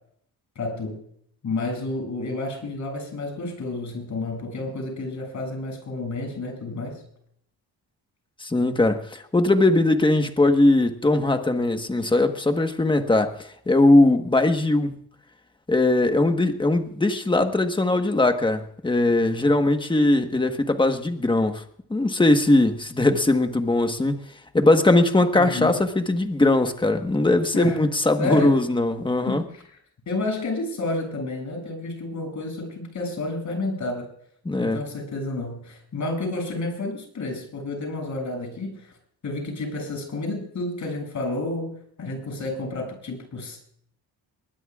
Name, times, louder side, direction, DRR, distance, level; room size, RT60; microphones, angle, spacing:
voice 1, 0.6-1.0 1.4-7.0 25.3-25.8 27.5-27.8 28.2-28.6 29.3-29.6 30.1-34.1 34.6-38.9 39.2-43.6, left 2 dB, 50° left, 2 dB, 7.5 m, -30 dB
voice 2, 8.4-14.9 15.7-21.6 21.9-24.2 24.5-29.4 34.4-34.8, left 2 dB, 15° left, 6 dB, 1.3 m, -20 dB
21.5 x 20.0 x 2.5 m, 0.66 s
cardioid pair, 135°, 38 cm